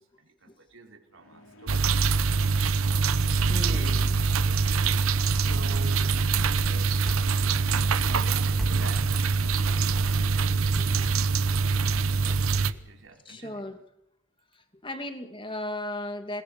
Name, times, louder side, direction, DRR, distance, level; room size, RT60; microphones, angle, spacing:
voice 1, 0.0-2.3 3.5-4.1 4.7-6.2 6.6-7.2 8.1-11.8 12.1-13.7, right 3 dB, 65° right, 2 dB, 4.7 m, -48 dB
sound 1, 1.2-13.0, equal, 80° left, 3.8 m, -46 dB
sound 2, 1.7-12.7, right 4 dB, 80° right, 1.0 m, -24 dB
voice 2, 3.5-4.2 11.0-11.1 12.1-12.2 13.3-13.8 14.5-16.4, left 1 dB, 25° left, 7 dB, 2.2 m, -36 dB
sound 3, 3.7-13.1, equal, ahead, 3.1 m, -45 dB
28.0 x 21.5 x 6.6 m, 0.78 s
head